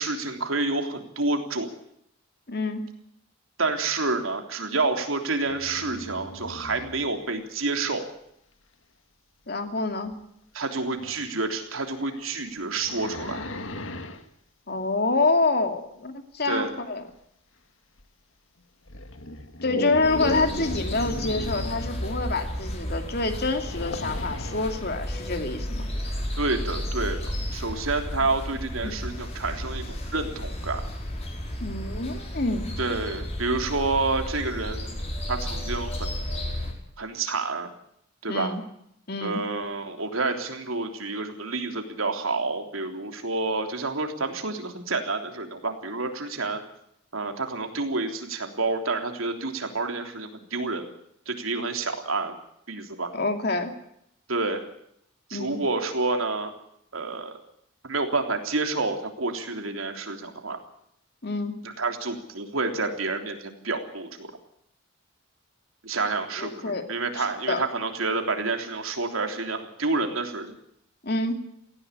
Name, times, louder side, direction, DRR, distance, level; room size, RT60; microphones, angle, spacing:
voice 1, 0.0-1.7 3.6-8.0 10.5-13.5 16.5-16.7 26.4-30.8 32.8-35.0 35.3-36.1 37.0-37.7 38.2-38.6 39.2-46.6 47.1-50.8 51.3-52.4 52.7-53.1 54.3-54.6 55.3-56.5 56.9-57.3 57.8-60.6 61.6-64.3 65.8-70.6, right 3 dB, 85° right, 5 dB, 3.5 m, -29 dB
voice 2, 2.5-2.9 9.5-10.1 14.7-17.0 19.6-25.9 28.8-29.0 31.6-32.7 38.3-38.6 39.1-39.4 53.1-53.7 55.3-55.6 61.2-61.5 66.4-66.9 67.2-67.6 71.0-71.4, left 3 dB, 50° left, 6 dB, 2.7 m, -27 dB
sound 1, 5.5-7.1 10.1-10.2 11.0-11.2 11.8-14.2 18.0-18.1 18.9-22.3 23.5-24.8, left 1 dB, 70° left, 1.8 m, -35 dB
sound 2, 20.0-36.7, left 1 dB, 30° left, 5.3 m, -33 dB
18.0 x 16.5 x 9.9 m, 0.74 s
head